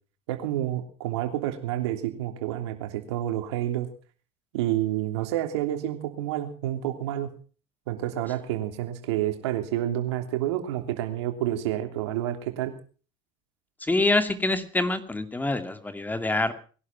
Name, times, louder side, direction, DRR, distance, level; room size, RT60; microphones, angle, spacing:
voice 1, 0.3-3.9 4.5-7.3 7.9-12.7, right 13 dB, 85° right, 6 dB, 3.1 m, -29 dB
voice 2, 13.8-16.5, left 2 dB, 10° left, 9 dB, 2.3 m, -25 dB
21.0 x 11.5 x 6.0 m, 0.41 s
supercardioid pair, 90°, 14 cm